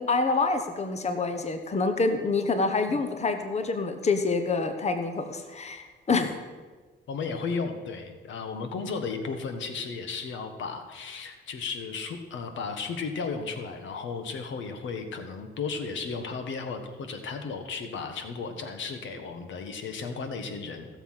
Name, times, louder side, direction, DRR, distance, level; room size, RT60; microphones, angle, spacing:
voice 1, 0.0-6.3, left 3 dB, 35° left, 7 dB, 1.1 m, -27 dB
voice 2, 7.1-20.9, left 4 dB, 70° left, 7 dB, 1.4 m, -34 dB
15.5 x 7.1 x 5.8 m, 1.4 s
cardioid pair, 90°, 20 cm